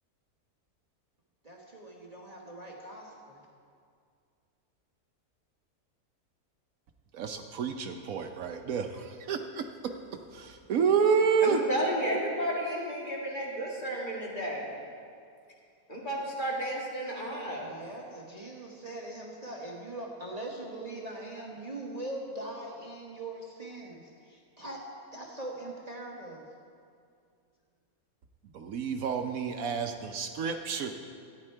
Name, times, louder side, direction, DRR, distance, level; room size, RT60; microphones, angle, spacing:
voice 1, 1.4-3.5 17.6-24.8 25.1-26.5, right 1 dB, 30° right, -2 dB, 1.2 m, -41 dB
voice 2, 7.1-9.6 10.3-11.6 28.5-30.9, right 6 dB, 70° right, 5 dB, 1.1 m, -29 dB
voice 3, 11.4-14.7 15.9-17.7, equal, 35° left, -4 dB, 2.1 m, -32 dB
14.5 x 9.6 x 4.5 m, 2.3 s
omnidirectional pair, 1.5 m